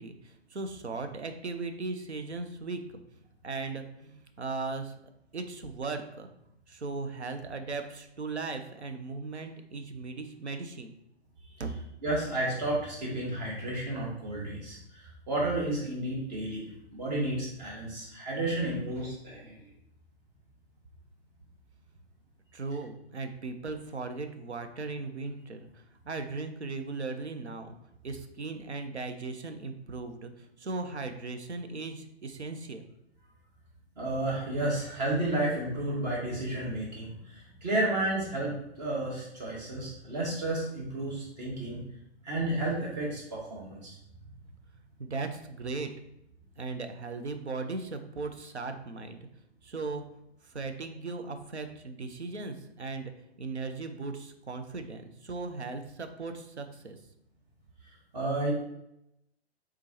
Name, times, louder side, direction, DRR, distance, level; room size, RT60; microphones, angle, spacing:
voice 1, 0.0-3.0 3.4-4.9 5.3-6.3 6.7-10.9 11.6-11.7 22.5-27.7 28.0-32.8 45.0-45.9 46.6-49.2 49.6-50.0 50.4-53.1 53.4-57.0, right 3 dB, 80° right, 7 dB, 0.7 m, -37 dB
voice 2, 12.0-16.6 16.9-19.5 34.0-41.8 42.2-43.9 58.1-58.5, right 1 dB, 40° right, -4 dB, 1.4 m, -32 dB
4.4 x 3.7 x 2.8 m, 0.80 s
figure-of-eight pair, 120°, 33 cm